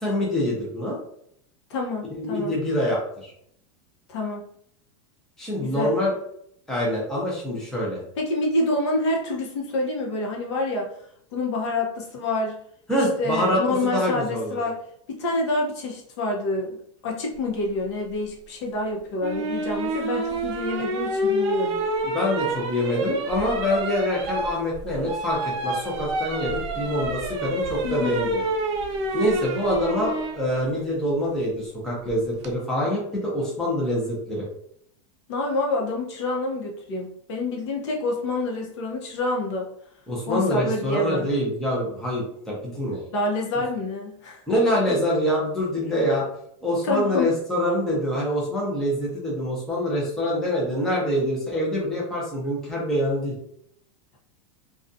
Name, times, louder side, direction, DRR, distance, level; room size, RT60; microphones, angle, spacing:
voice 1, 0.0-1.0 2.1-3.3 5.4-6.1 6.7-8.0 12.9-13.6 13.9-14.6 22.0-28.4 29.1-34.5 40.1-43.1 44.5-46.2 46.6-53.4, equal, 5° left, -5 dB, 0.5 m, -25 dB
voice 2, 1.7-2.5 4.1-4.5 5.6-5.9 8.2-10.9 11.3-12.6 13.2-14.8 15.1-16.8 17.0-21.8 27.8-28.2 35.3-39.7 40.3-41.3 43.1-44.4 46.8-47.3, left 2 dB, 65° left, 0 dB, 0.8 m, -27 dB
sound 1, 19.2-30.4 32.1-32.5, right 2 dB, 60° right, 0.5 m, -28 dB
2.5 x 2.3 x 2.5 m, 0.68 s
supercardioid pair, 170°, 16 cm